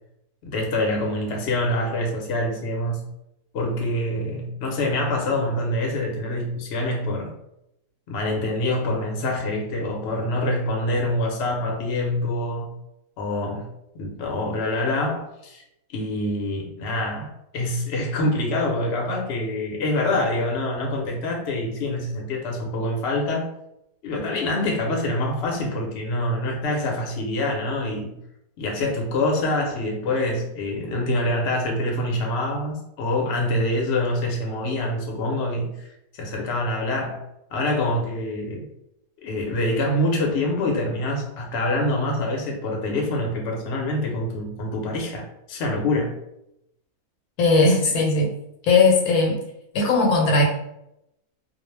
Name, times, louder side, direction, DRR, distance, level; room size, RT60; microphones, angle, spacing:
voice 1, 0.4-3.1 3.5-7.3 8.1-12.7 13.2-13.7 14.0-15.6 15.9-23.4 24.0-28.2 28.6-35.7 36.1-38.7 39.2-46.1, left 1 dB, 55° left, 0 dB, 0.8 m, -25 dB
voice 2, 47.4-48.3 48.6-49.4 49.7-50.5, left 3 dB, 80° left, 1 dB, 1.0 m, -18 dB
2.4 x 2.0 x 3.1 m, 0.82 s
omnidirectional pair, 1.6 m